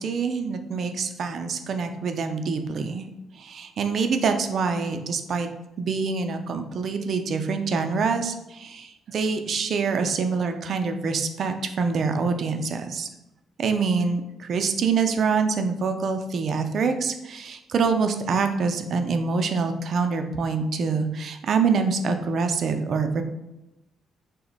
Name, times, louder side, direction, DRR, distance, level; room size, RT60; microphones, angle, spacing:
voice 1, 0.0-3.1 3.4-5.5 5.8-13.1 13.6-23.2, right 5 dB, 60° right, 6 dB, 0.3 m, -25 dB
2.9 x 2.1 x 3.9 m, 0.94 s
cardioid pair, 90°, 0 cm